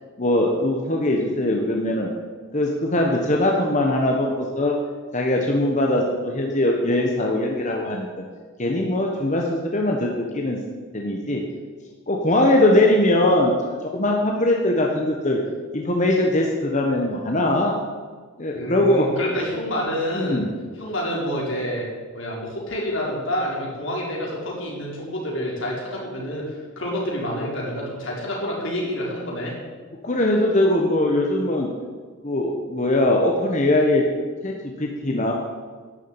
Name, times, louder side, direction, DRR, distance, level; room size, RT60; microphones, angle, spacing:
voice 1, 0.2-2.1 2.5-4.7 5.1-8.1 8.6-10.6 10.9-11.4 12.1-15.4 15.7-17.8 18.4-19.1 20.1-20.5 30.0-31.7 32.2-34.0 34.4-35.3, left 1 dB, 40° left, 0 dB, 1.3 m, -21 dB
voice 2, 18.5-20.5 20.8-21.9 22.1-29.5, equal, 80° left, -3 dB, 4.5 m, -28 dB
11.5 x 7.5 x 8.9 m, 1.5 s
head